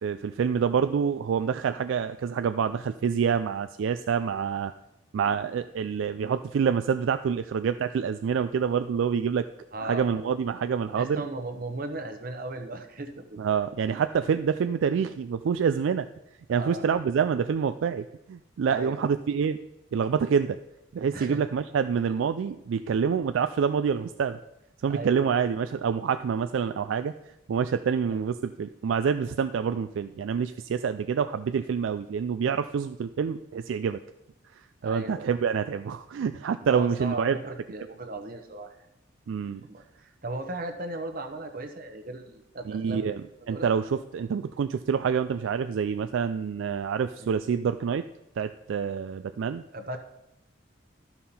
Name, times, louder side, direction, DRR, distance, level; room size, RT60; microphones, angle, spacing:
voice 1, 0.0-4.7 5.1-9.5 9.8-11.2 13.4-16.1 16.5-19.6 19.9-20.6 20.9-24.4 24.8-27.1 27.5-34.0 34.5-37.4 39.3-39.7 42.7-48.0 48.4-49.6, right 6 dB, 75° right, 10 dB, 0.3 m, -27 dB
voice 2, 9.7-10.2 11.0-13.6 16.5-17.0 18.7-19.0 21.1-21.4 24.9-25.4 28.1-28.2 34.8-35.3 36.6-38.8 39.6-43.1 43.5-43.7 47.2-47.4 49.7-50.0, right 2 dB, 45° right, 6 dB, 0.9 m, -36 dB
12.5 x 5.6 x 4.3 m, 0.88 s
head